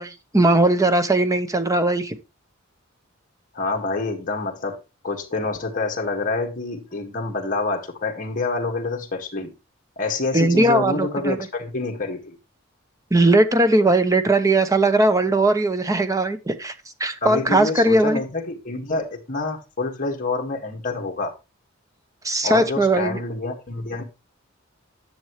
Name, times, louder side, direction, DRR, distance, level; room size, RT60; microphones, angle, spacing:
voice 1, 0.0-2.2 10.3-11.4 13.1-16.7 17.0-18.2 22.2-23.2, right 2 dB, 15° right, 0.9 m, -19 dB
voice 2, 3.5-9.5 10.0-12.4 17.2-21.3 22.4-24.0, left 3 dB, 40° left, 1.8 m, -27 dB
10.5 x 7.0 x 3.1 m
head